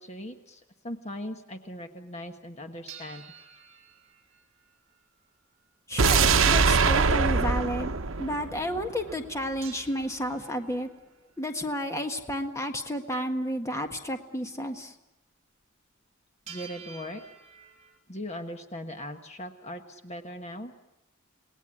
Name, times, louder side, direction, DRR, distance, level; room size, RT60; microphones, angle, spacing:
voice 1, 0.0-3.2 16.5-17.2 18.1-20.7, equal, 35° left, 6 dB, 1.4 m, -39 dB
sound 1, 2.9-5.3 9.6-11.4 16.5-18.0, right 6 dB, 35° right, 5.2 m, -49 dB
voice 2, 5.9-7.9 8.2-10.9 11.4-14.9, equal, 15° left, 5 dB, 1.6 m, -31 dB
sound 2, 6.0-9.1 9.4-9.5, right 5 dB, 70° right, 0.9 m, -23 dB
28.5 x 19.0 x 10.0 m, 0.99 s
head